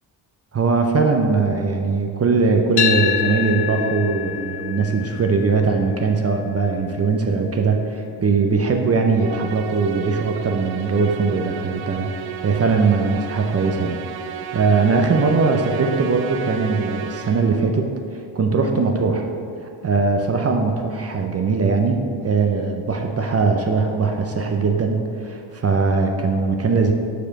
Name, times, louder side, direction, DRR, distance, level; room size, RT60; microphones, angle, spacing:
voice 1, 0.5-19.3 19.8-26.9, right 4 dB, 30° right, 3 dB, 0.6 m, -20 dB
sound 1, 2.8-10.9, left 9 dB, 55° left, 0.6 m, -29 dB
Musical instrument, 9.2-17.7, right 9 dB, 70° right, 0.6 m, -33 dB
4.9 x 4.9 x 5.8 m, 2.5 s
cardioid pair, 85°, 47 cm